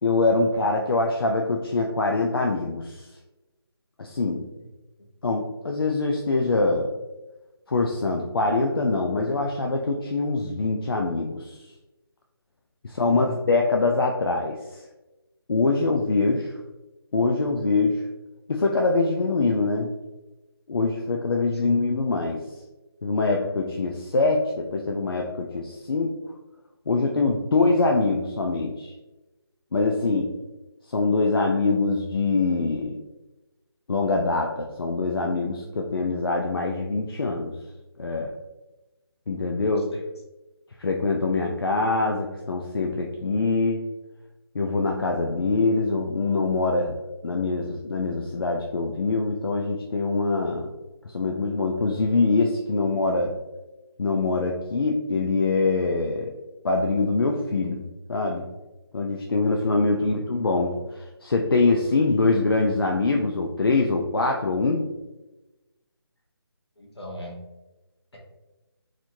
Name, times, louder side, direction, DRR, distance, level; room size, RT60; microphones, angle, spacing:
voice 1, 0.0-3.1 4.0-4.5 5.2-6.9 7.7-11.6 12.8-14.8 15.5-16.5 17.1-18.1 18.5-19.9 20.7-22.4 23.0-26.1 26.9-28.9 29.7-30.4 30.9-33.0 33.9-37.5 38.0-38.3 39.3-40.0 40.8-43.8 44.5-47.0 47.2-50.7 51.1-53.4 54.0-56.3 56.6-57.8 58.1-58.5 58.9-64.8, left 3 dB, 60° left, 1 dB, 0.5 m, -24 dB
voice 2, 66.8-67.4, equal, 80° left, 0 dB, 1.3 m, -37 dB
3.9 x 3.1 x 2.6 m, 1.1 s
figure-of-eight pair, 170°, 14 cm